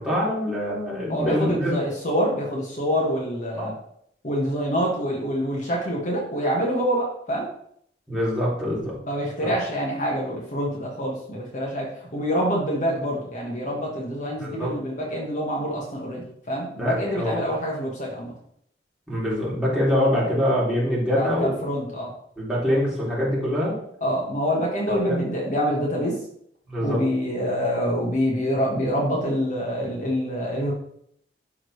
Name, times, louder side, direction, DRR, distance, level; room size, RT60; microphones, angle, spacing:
voice 1, 0.0-1.7 3.6-3.7 8.1-8.9 9.4-9.5 14.4-14.7 16.8-17.4 19.1-21.5 22.4-23.7 25.1-25.2 26.7-27.0, left 1 dB, 5° right, -7 dB, 2.5 m, -24 dB
voice 2, 1.1-3.7 4.2-7.4 9.0-11.9 12.1-18.3 21.2-22.1 24.0-26.1 26.8-30.7, equal, 45° left, -2 dB, 1.4 m, -26 dB
11.0 x 3.8 x 3.2 m, 0.69 s
head